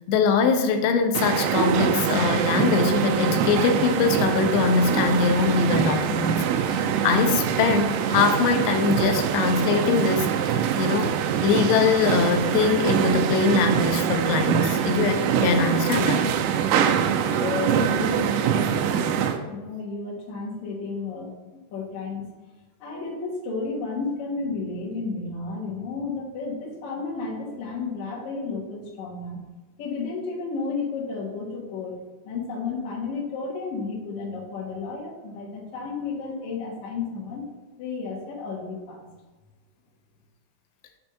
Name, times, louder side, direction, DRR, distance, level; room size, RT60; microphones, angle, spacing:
voice 1, 0.1-11.2 11.4-16.3, left 5 dB, 90° left, 6 dB, 2.8 m, -22 dB
sound 1, 1.1-19.4, right 8 dB, 85° right, 2.6 m, -24 dB
voice 2, 17.4-19.0 19.5-21.3 21.7-22.3 22.8-29.4 29.8-31.9 32.2-37.5 37.8-39.1, left 4 dB, 60° left, -3 dB, 2.1 m, -32 dB
6.9 x 3.5 x 5.6 m, 1.2 s
omnidirectional pair, 4.8 m